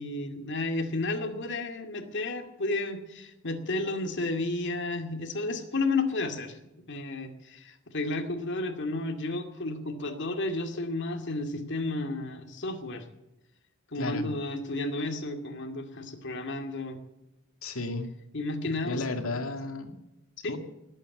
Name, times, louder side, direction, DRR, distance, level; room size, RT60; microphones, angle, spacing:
voice 1, 0.0-6.6 6.9-13.1 13.9-17.0 18.3-19.1 20.4-20.6, left 2 dB, 60° left, 6 dB, 2.3 m, -32 dB
voice 2, 17.6-18.1 18.8-20.0 20.5-20.6, left 2 dB, 90° left, 6 dB, 2.3 m, -33 dB
19.5 x 8.9 x 7.8 m, 0.95 s
head